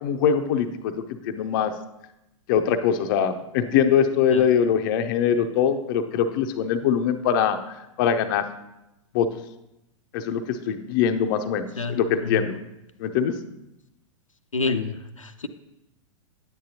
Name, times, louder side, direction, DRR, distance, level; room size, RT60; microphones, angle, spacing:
voice 1, 0.0-1.7 2.5-8.5 9.1-9.3 10.1-12.6 13.0-13.4, left 8 dB, 40° left, 8 dB, 0.6 m, -23 dB
voice 2, 11.8-12.4 14.5-15.5, left 4 dB, 85° left, 7 dB, 0.5 m, -28 dB
10.0 x 8.8 x 2.8 m, 0.90 s
figure-of-eight pair, 100°, 16 cm